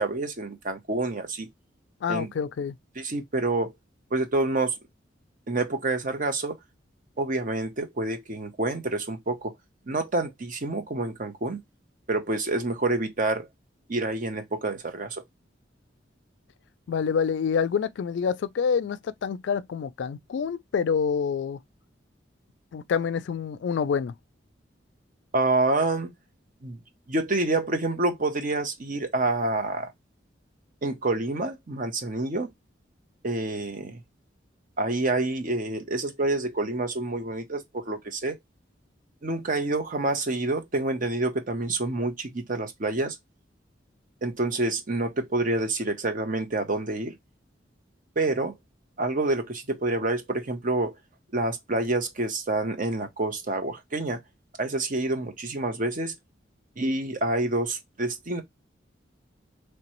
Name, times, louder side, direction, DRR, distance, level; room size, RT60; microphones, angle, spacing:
voice 1, 0.0-1.5 2.1-2.3 3.0-3.7 4.1-4.8 5.5-6.5 7.2-9.5 9.9-11.6 12.1-13.5 13.9-15.2 25.3-26.1 26.6-26.8 27.1-29.9 30.8-32.5 33.2-34.0 34.8-38.4 39.2-43.2 44.2-47.2 48.2-48.5 49.0-51.0 51.3-54.2 54.6-56.1 56.8-58.4, right 2 dB, 45° right, 0.8 m, -27 dB
voice 2, 2.0-2.8 16.9-21.6 22.7-24.1, left 6 dB, 70° left, 0.3 m, -27 dB
3.2 x 2.9 x 2.9 m
head